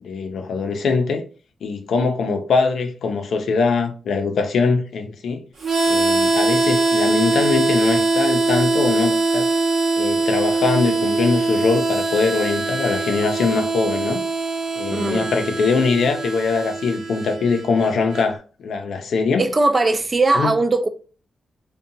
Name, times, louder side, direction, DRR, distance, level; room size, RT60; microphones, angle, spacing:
voice 1, 0.0-1.2 1.6-5.4 5.9-9.5 10.0-14.2 14.8-19.4 20.3-20.5, left 4 dB, 80° left, 0.5 m, -22 dB
Harmonica, 5.6-18.3, right 3 dB, 65° right, 0.7 m, -22 dB
voice 2, 14.9-15.3 19.4-20.9, right 3 dB, 30° right, 0.3 m, -19 dB
2.7 x 2.2 x 2.6 m
wide cardioid pair, 115°, 0 cm